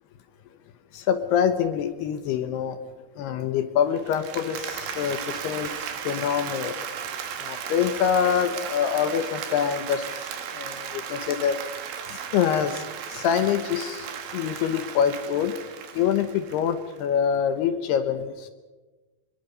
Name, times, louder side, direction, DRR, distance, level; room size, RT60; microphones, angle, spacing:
voice 1, 0.9-2.8 3.2-6.8 7.4-10.1 10.5-11.6 12.1-12.8 13.1-14.1 14.3-15.5 15.9-18.5, left 8 dB, 75° left, 9 dB, 2.6 m, -25 dB
Applause, 4.0-17.0, right 8 dB, 65° right, 3.7 m, -35 dB
26.0 x 22.0 x 5.5 m, 1.2 s
omnidirectional pair, 5.7 m